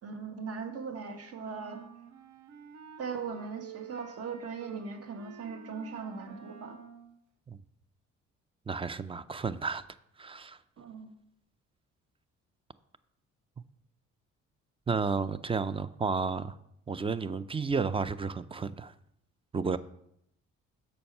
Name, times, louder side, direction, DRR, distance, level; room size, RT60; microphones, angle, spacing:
voice 1, 0.0-1.8 3.0-6.8 10.8-11.1, right 5 dB, 50° right, 1.3 m, -39 dB
sound 1, 1.4-7.2, right 8 dB, 70° right, 0.8 m, -50 dB
voice 2, 8.7-9.8 10.2-10.6 14.9-16.6 16.9-18.9 19.5-19.8, right 5 dB, 20° right, 0.3 m, -32 dB
6.9 x 5.6 x 5.4 m
cardioid pair, 90°, 30 cm